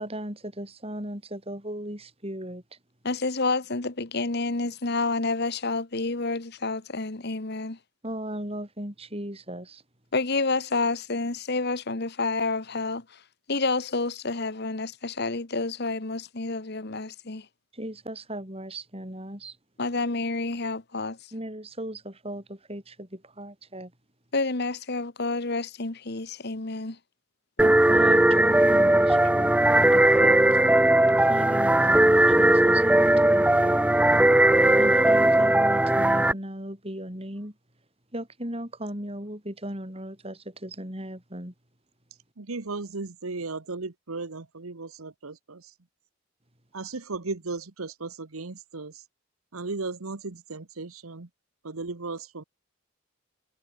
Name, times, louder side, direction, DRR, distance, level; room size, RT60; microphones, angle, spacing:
voice 1, 0.0-2.6 8.0-9.8 17.7-19.6 21.3-23.9 27.6-29.5 29.9-30.4 31.1-33.8 34.8-37.5 38.1-41.5, right 1 dB, 30° right, 7.4 m, -37 dB
voice 2, 3.0-7.8 10.1-13.0 13.5-17.4 19.8-21.2 24.3-27.0, left 3 dB, 50° left, 1.4 m, -29 dB
sound 1, 27.6-36.3, right 1 dB, 5° right, 0.4 m, -19 dB
voice 3, 42.4-45.7 46.7-49.0 49.5-51.3 51.6-52.4, right 3 dB, 90° right, 1.2 m, -36 dB
head